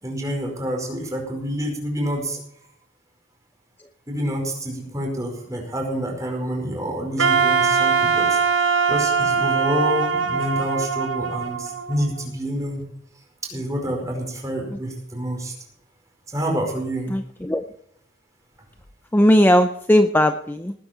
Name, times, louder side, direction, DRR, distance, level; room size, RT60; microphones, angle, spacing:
voice 1, 0.0-2.4 4.1-8.4 8.9-12.8 13.4-15.5 16.3-17.1, equal, 15° right, 1 dB, 4.9 m, -27 dB
Wind instrument woodwind instrument, 7.2-12.2, right 5 dB, 75° right, 1.6 m, -21 dB
voice 2, 17.1-17.6 19.1-20.7, equal, 10° left, 8 dB, 0.5 m, -18 dB
19.5 x 10.0 x 4.4 m, 0.72 s
head